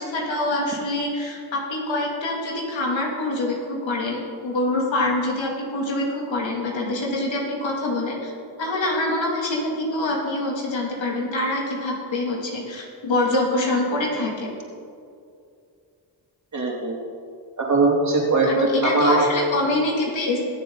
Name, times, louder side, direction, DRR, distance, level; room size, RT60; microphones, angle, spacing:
voice 1, 0.0-8.3 8.6-14.5 18.4-20.4, left 2 dB, 70° left, -2 dB, 3.1 m, -25 dB
voice 2, 16.5-17.0 17.6-19.3, right 3 dB, 35° right, -2 dB, 3.2 m, -20 dB
20.5 x 7.5 x 4.1 m, 2.4 s
supercardioid pair, 55°, 47 cm